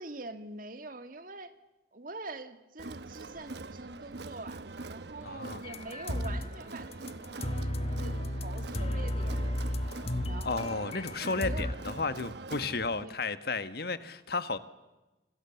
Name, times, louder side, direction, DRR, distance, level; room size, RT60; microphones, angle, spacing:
voice 1, 0.0-1.5 1.9-9.6 10.3-11.8 13.0-13.2, right 2 dB, 50° right, 2.1 m, -44 dB
Crowd, 2.8-13.0, right 3 dB, 70° right, 1.0 m, -44 dB
voice 2, 5.2-5.6 10.4-14.6, left 3 dB, 60° left, 1.5 m, -33 dB
sound 1, 5.6-6.6 6.9-11.7, left 1 dB, 35° left, 1.4 m, -34 dB
30.0 x 26.0 x 7.1 m
head